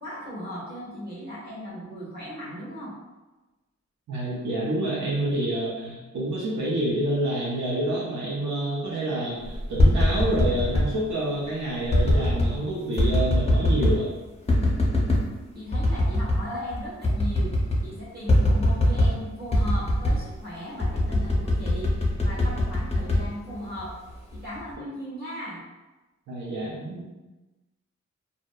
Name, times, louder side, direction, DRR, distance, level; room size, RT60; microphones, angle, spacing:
voice 1, 0.0-2.9 15.5-17.5 17.8-21.9 22.2-24.0 24.3-25.6, equal, 35° right, -8 dB, 1.1 m, -37 dB
voice 2, 4.1-14.1 26.3-27.1, right 1 dB, 75° right, -6 dB, 0.6 m, -28 dB
sound 1, 9.5-10.9 11.9-12.5 13.0-14.0 14.5-15.3 15.7-16.4 16.7-16.8 17.0-17.9 18.3-19.2 19.5-20.3 20.8-23.9 24.3-24.7, left 1 dB, 20° left, 0.5 m, -22 dB
2.6 x 2.1 x 2.2 m, 1.1 s
wide cardioid pair, 95°, 29 cm